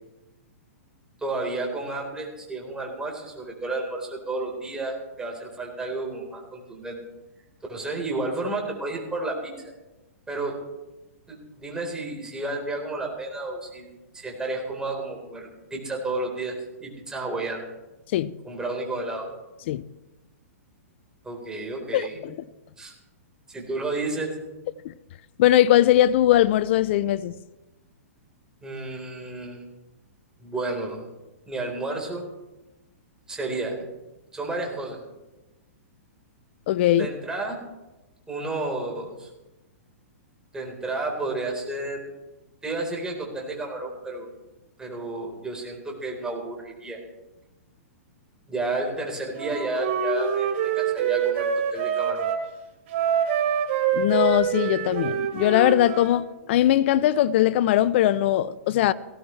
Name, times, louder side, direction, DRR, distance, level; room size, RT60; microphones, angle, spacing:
voice 1, 1.2-7.0 7.7-9.5 10.3-10.6 11.3-13.9 14.1-17.7 18.4-19.3 21.2-22.2 22.8-22.9 23.5-24.4 28.6-29.6 30.4-31.1 31.5-32.2 33.3-33.8 34.3-35.0 37.0-37.6 38.3-39.3 40.5-42.1 42.6-44.3 44.8-47.0 48.5-52.3, right 2 dB, 10° right, 4.2 m, -31 dB
voice 2, 21.9-22.3 24.8-24.9 25.4-27.3 36.7-37.1 53.9-58.9, left 13 dB, 50° left, 0.5 m, -20 dB
Wind instrument woodwind instrument, 49.3-52.4 52.9-56.2, right 8 dB, 50° right, 3.5 m, -25 dB
19.0 x 16.5 x 3.3 m
hypercardioid pair, 130°, 8 cm